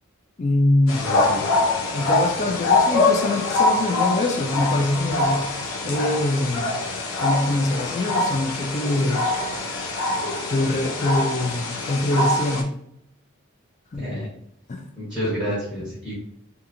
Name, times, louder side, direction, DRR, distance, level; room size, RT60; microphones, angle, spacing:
voice 1, 0.4-1.0 1.9-5.5 5.8-6.8 7.2-9.2 10.5-12.7 13.9-14.1 14.7-14.8, left 2 dB, 35° left, 2 dB, 0.4 m, -23 dB
sound 1, 0.9-12.6, left 2 dB, 85° left, 0.6 m, -24 dB
voice 2, 1.0-1.4 14.0-14.3 15.0-16.1, equal, 10° left, -11 dB, 1.1 m, -29 dB
2.8 x 2.5 x 2.5 m, 0.72 s
head